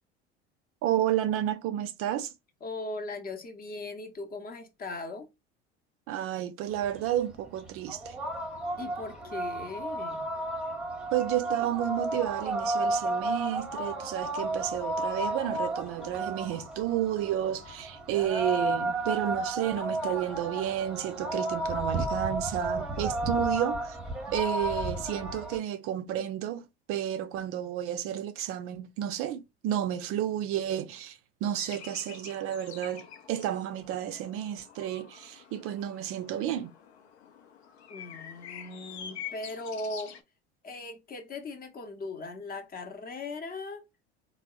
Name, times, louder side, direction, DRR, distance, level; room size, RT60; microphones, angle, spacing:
voice 1, 0.8-2.3 6.1-8.2 11.1-24.0 24.3-36.7, right 11 dB, 45° right, 0.4 m, -31 dB
voice 2, 2.6-5.3 8.8-10.3 37.9-40.2 40.6-43.8, left 2 dB, 30° left, 0.7 m, -39 dB
sound 1, 6.7-25.6, right 1 dB, 5° right, 0.8 m, -33 dB
sound 2, 31.5-40.2, left 9 dB, 75° left, 0.6 m, -46 dB
3.4 x 2.0 x 2.3 m
hypercardioid pair, 75°, 33 cm